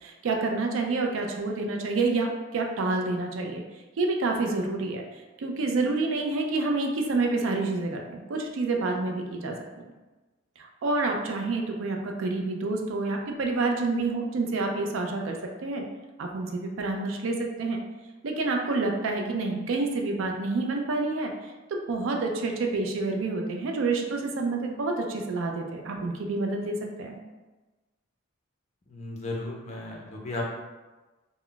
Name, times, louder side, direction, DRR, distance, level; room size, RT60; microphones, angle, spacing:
voice 1, 0.0-3.6 4.0-5.0 5.4-9.9 10.6-15.8 16.2-17.8 18.2-27.2, right 3 dB, 65° right, 2 dB, 0.4 m, -28 dB
voice 2, 28.9-30.4, left 2 dB, 35° left, -2 dB, 0.5 m, -35 dB
2.2 x 2.0 x 3.7 m, 1.2 s
head